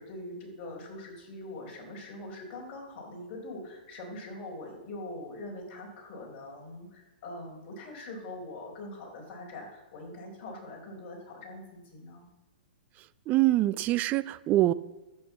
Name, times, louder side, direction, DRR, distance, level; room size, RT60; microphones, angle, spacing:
voice 1, 0.0-12.3, left 1 dB, 40° left, -1 dB, 4.6 m, -43 dB
voice 2, 13.3-14.7, right 16 dB, 30° right, 16 dB, 0.5 m, -24 dB
11.5 x 8.6 x 7.2 m, 1.1 s
hypercardioid pair, 130°, 6 cm